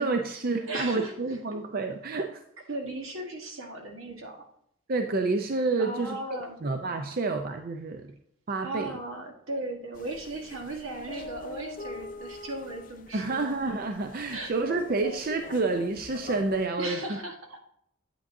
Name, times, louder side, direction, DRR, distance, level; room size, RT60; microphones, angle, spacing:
voice 1, 0.0-2.4 4.9-6.2 6.6-8.1 8.5-8.9 13.1-17.2, right 3 dB, 45° right, 5 dB, 0.5 m, -29 dB
voice 2, 0.7-1.4 2.7-4.4 5.8-6.6 8.6-13.5 14.3-14.5 16.8-17.6, right 2 dB, 80° right, 2 dB, 1.4 m, -37 dB
sound 1, 9.9-16.7, left 2 dB, 40° left, 0.5 m, -43 dB
8.6 x 8.4 x 2.6 m, 0.72 s
head